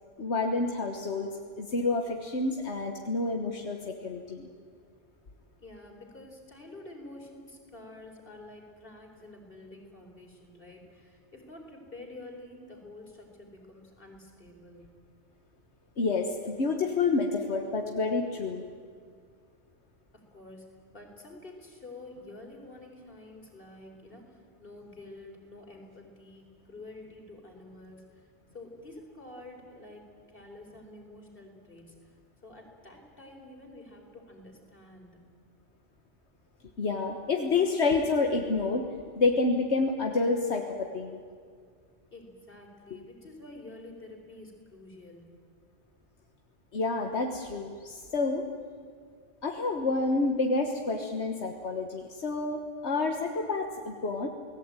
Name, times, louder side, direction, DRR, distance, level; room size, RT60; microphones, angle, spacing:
voice 1, 0.2-1.3 1.6-4.5 16.0-18.6 36.8-38.9 39.2-41.2 46.7-48.5 49.4-54.3, left 3 dB, 85° left, 3 dB, 1.8 m, -28 dB
voice 2, 5.6-14.9 20.1-28.3 28.5-30.0 30.3-32.1 32.4-35.2 42.1-45.3, left 2 dB, 55° left, 1 dB, 4.7 m, -48 dB
29.0 x 19.0 x 9.1 m, 2.1 s
omnidirectional pair, 1.1 m